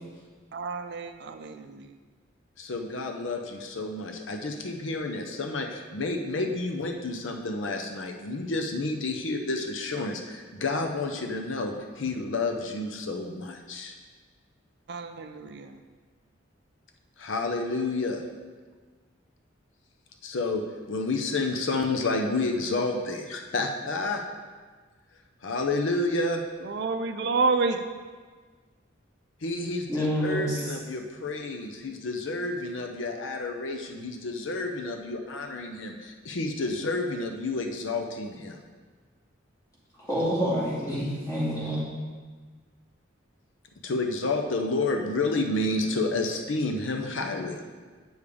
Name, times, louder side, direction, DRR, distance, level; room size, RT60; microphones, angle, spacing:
voice 1, 0.5-1.9 14.9-15.8 26.7-27.8, right 4 dB, 60° right, 8 dB, 0.4 m, -29 dB
voice 2, 2.6-14.0 17.2-18.2 20.2-20.6 20.9-24.2 25.4-26.4 29.4-38.6 43.8-47.6, left 2 dB, 80° left, 3 dB, 0.7 m, -30 dB
voice 3, 29.9-30.7 40.0-41.9, equal, 20° left, -8 dB, 2.4 m, -28 dB
7.9 x 6.8 x 3.5 m, 1.4 s
head